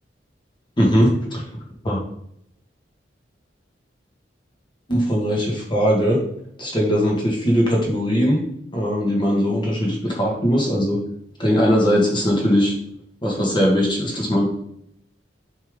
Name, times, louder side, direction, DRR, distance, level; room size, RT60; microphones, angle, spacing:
voice 1, 0.8-1.4 1.8-2.0 4.9-6.2 6.6-8.4 8.7-11.0 11.4-12.7 13.2-14.4, equal, 25° left, -2 dB, 1.8 m, -20 dB
7.0 x 5.4 x 3.8 m, 0.74 s
head